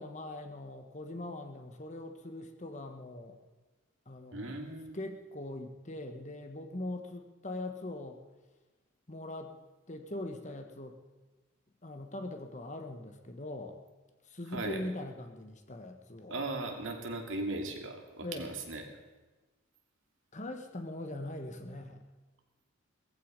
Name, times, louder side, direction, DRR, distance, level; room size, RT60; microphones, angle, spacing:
voice 1, 0.0-3.4 4.1-4.6 4.9-8.2 9.1-9.5 9.9-11.0 11.8-13.8 14.2-16.4 18.2-18.5 20.3-22.0, left 1 dB, 35° left, 6 dB, 1.4 m, -41 dB
voice 2, 4.3-5.0 14.5-14.8 16.3-18.8, right 2 dB, 65° right, 3 dB, 2.7 m, -38 dB
18.0 x 15.0 x 5.3 m, 1.2 s
head